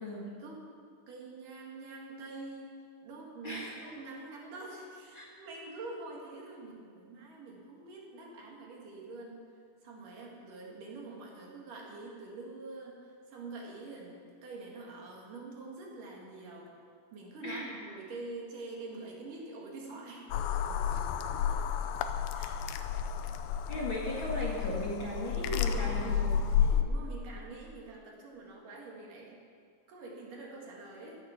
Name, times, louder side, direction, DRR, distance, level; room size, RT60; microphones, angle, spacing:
voice 1, 0.3-0.6 1.1-2.7 3.0-9.4 9.8-16.7 17.1-20.3 21.5-21.6 22.3-22.6 23.1-23.4 23.6-23.8 25.6-26.0 26.8-29.4 29.9-31.2, right 3 dB, 65° right, -2 dB, 3.7 m, -46 dB
voice 2, 3.4-3.8 5.1-5.3 17.4-17.7 23.7-26.3 26.6-26.8, equal, 40° left, -4 dB, 2.1 m, -37 dB
sound 1, 20.3-26.8, left 8 dB, 85° left, 2.5 m, -31 dB
16.5 x 12.5 x 5.9 m, 2.1 s
omnidirectional pair, 4.1 m